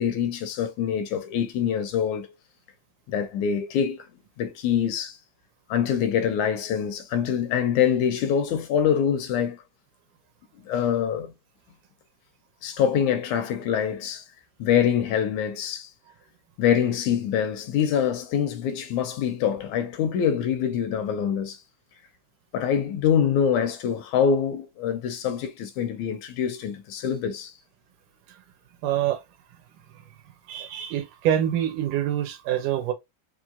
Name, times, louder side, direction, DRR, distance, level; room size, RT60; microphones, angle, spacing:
voice 1, 0.0-2.3 3.1-4.1 4.4-5.2 5.7-9.6 10.7-11.3 12.6-14.3 14.6-15.9 16.6-21.6 22.5-27.5, left 8 dB, 80° left, 1.9 m, -25 dB
voice 2, 28.8-29.2 30.5-32.9, right 11 dB, 90° right, 2.5 m, -25 dB
5.4 x 3.1 x 2.5 m
omnidirectional pair, 3.6 m